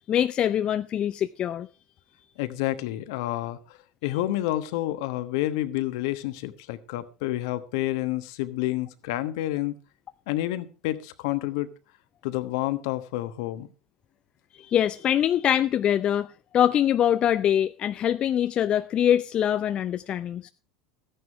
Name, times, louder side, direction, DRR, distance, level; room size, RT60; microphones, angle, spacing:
voice 1, 0.1-1.7 14.6-16.3 16.5-20.5, left 10 dB, 40° left, 0.5 m, -23 dB
voice 2, 2.4-3.6 4.0-9.8 10.3-11.7 12.2-13.7, left 15 dB, 65° left, 1.2 m, -29 dB
14.0 x 10.0 x 4.6 m
hypercardioid pair, 85°, 3 cm